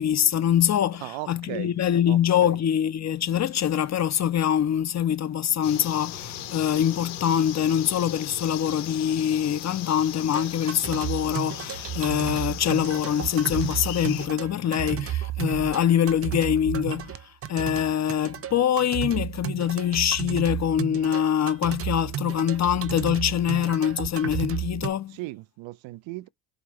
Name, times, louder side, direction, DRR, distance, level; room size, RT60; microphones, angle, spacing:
voice 1, 0.0-17.2 17.5-25.2, left 9 dB, 35° left, 0.6 m, -24 dB
voice 2, 1.0-1.7 2.1-2.6 25.1-26.3, right 18 dB, 70° right, 0.6 m, -37 dB
sound 1, 5.6-14.3, left 10 dB, 85° left, 1.4 m, -38 dB
sound 2, 10.3-24.9, right 11 dB, 30° right, 0.6 m, -33 dB
4.9 x 2.4 x 3.0 m
cardioid pair, 105°, 48 cm